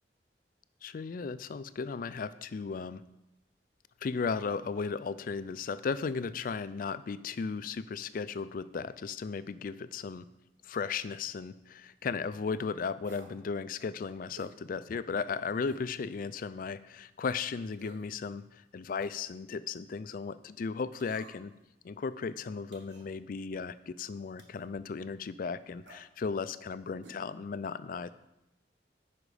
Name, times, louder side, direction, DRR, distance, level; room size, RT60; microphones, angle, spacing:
voice 1, 0.8-3.0 4.0-10.2 10.6-21.5 21.8-28.1, left 5 dB, 50° left, 14 dB, 0.4 m, -36 dB
sound 1, 13.0-13.4 14.4-14.6 15.7-15.9 16.4-16.5 17.7-18.1 19.0-19.4 21.0-21.6 22.7-23.1 24.4-24.7 25.8-26.0 27.0-27.2 27.5-27.6, right 2 dB, 80° right, 1.3 m, -53 dB
9.9 x 5.1 x 4.9 m, 0.91 s
head